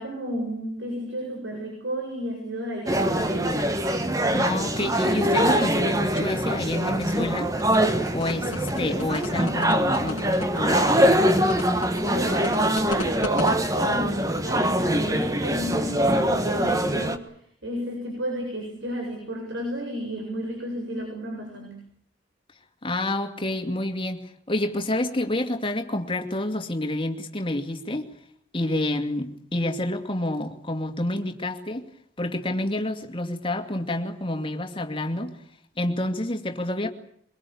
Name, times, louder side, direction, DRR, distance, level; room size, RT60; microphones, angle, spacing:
voice 1, 0.0-3.6 12.0-17.3 17.6-21.8, equal, 70° right, 1 dB, 7.6 m, -32 dB
sound 1, 2.9-17.2, right 1 dB, 15° right, 1.5 m, -23 dB
voice 2, 4.3-7.5 8.1-11.2 22.8-28.1 28.5-31.9 32.2-35.3 35.8-36.9, left 1 dB, 25° left, 5 dB, 2.4 m, -28 dB
sound 2, 7.6-13.5, left 3 dB, 90° left, 1.6 m, -35 dB
24.0 x 22.5 x 8.6 m, 0.65 s
head